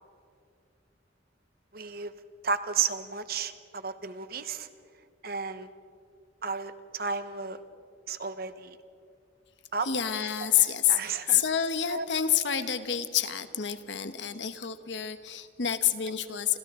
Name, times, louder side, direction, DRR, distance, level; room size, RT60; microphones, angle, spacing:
voice 1, 1.7-2.1 2.4-4.7 5.2-5.7 6.4-7.6 8.1-8.8 9.7-9.9 10.6-11.4 11.9-12.0, right 5 dB, 55° right, 10 dB, 1.1 m, -33 dB
voice 2, 9.8-16.6, left 9 dB, 80° left, 10 dB, 1.2 m, -28 dB
29.5 x 26.5 x 3.8 m, 2.4 s
head